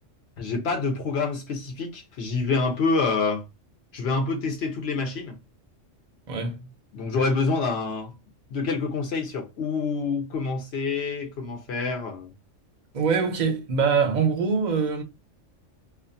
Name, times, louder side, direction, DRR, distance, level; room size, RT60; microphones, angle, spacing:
voice 1, 0.4-3.4 3.9-5.4 6.9-8.1 8.5-12.3, left 4 dB, 65° left, 0.8 m, -27 dB
voice 2, 6.3-6.6 12.9-15.0, right 5 dB, 50° right, 0.6 m, -23 dB
2.4 x 2.3 x 2.5 m
omnidirectional pair, 1.3 m